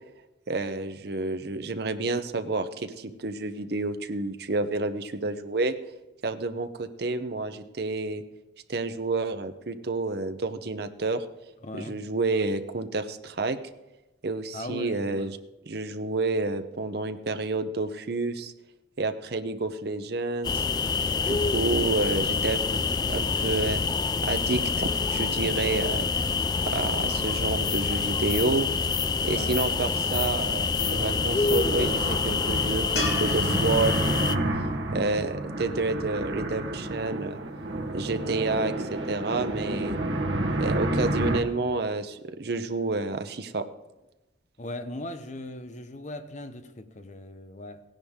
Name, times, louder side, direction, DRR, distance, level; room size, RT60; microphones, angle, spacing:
voice 1, 0.5-5.7 6.2-8.2 8.7-11.2 11.8-13.6 14.2-15.4 15.7-18.5 19.0-20.6 21.2-22.6 23.1-23.8 24.3-26.1 26.6-28.7 29.2-34.4 34.9-37.4 37.9-40.0 40.6-43.6, right 3 dB, 60° right, 0.8 m, -29 dB
voice 2, 11.6-12.0 14.5-15.3 29.3-29.7 44.6-47.8, left 1 dB, 40° left, 0.9 m, -39 dB
sound 1, 20.4-34.4, left 5 dB, 25° left, 0.3 m, -26 dB
sound 2, 30.8-41.4, right 1 dB, 80° right, 1.3 m, -30 dB
sound 3, 33.0-36.2 39.5-39.6, left 2 dB, 60° left, 3.0 m, -37 dB
17.0 x 10.5 x 3.7 m
head